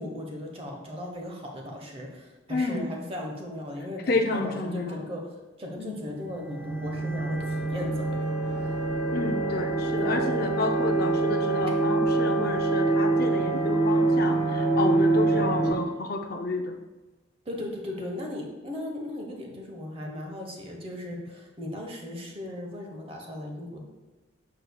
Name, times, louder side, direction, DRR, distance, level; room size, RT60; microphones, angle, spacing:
voice 1, 0.0-5.2 5.6-8.7 10.0-10.4 17.4-23.8, left 1 dB, 30° right, 1 dB, 1.1 m, -37 dB
voice 2, 2.5-2.9 4.1-5.1 5.8-6.0 9.1-16.8, left 3 dB, 50° left, 4 dB, 0.6 m, -30 dB
sound 1, 6.1-15.7, right 2 dB, 10° right, 1.6 m, -25 dB
7.5 x 6.5 x 2.3 m, 1.2 s
head